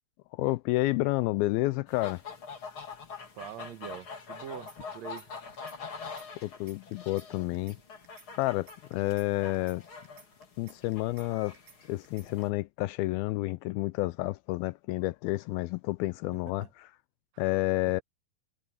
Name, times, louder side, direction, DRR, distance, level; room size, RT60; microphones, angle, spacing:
voice 1, 0.3-2.2 6.4-7.8 8.4-9.8 10.6-11.6 11.9-16.7 17.4-18.0, left 19 dB, 80° left, 2.2 m, -30 dB
sound 1, 1.9-12.5, left 5 dB, 35° left, 3.2 m, -45 dB
voice 2, 3.4-5.3 16.6-16.7 17.3-17.5 17.8-18.0, right 9 dB, 55° right, 2.1 m, -44 dB
sound 2, 4.7-5.3 5.5-5.8 6.0-7.3 7.5-7.8 8.0-9.3 9.5-9.8 10.0-11.3 11.5-11.8 12.0-12.4, right 8 dB, 85° right, 5.2 m, -56 dB
omnidirectional pair, 4.7 m